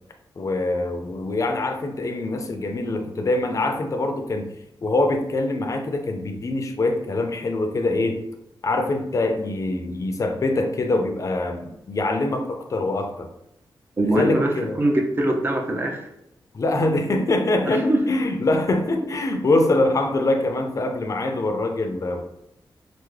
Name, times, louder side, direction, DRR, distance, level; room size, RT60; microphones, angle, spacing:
voice 1, 0.4-4.5 4.8-8.2 8.6-13.3 14.0-14.8 16.5-22.2, left 2 dB, 40° left, 5 dB, 0.4 m, -24 dB
voice 2, 14.0-16.1 17.7-18.0, right 1 dB, 25° right, 2 dB, 0.5 m, -22 dB
3.4 x 2.0 x 3.2 m, 0.84 s
wide cardioid pair, 130°, 8 cm